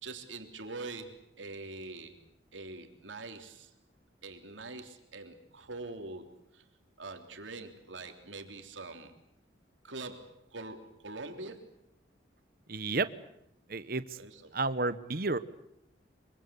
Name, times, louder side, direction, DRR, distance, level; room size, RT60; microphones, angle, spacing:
voice 1, 0.0-2.2 2.5-3.7 4.2-6.6 7.0-9.1 9.8-11.8 14.2-14.5, right 3 dB, 90° right, 6 dB, 3.5 m, -44 dB
voice 2, 12.7-13.1 13.7-14.2 14.5-15.4, right 3 dB, 50° right, 14 dB, 1.1 m, -31 dB
25.5 x 24.0 x 8.5 m, 0.75 s
head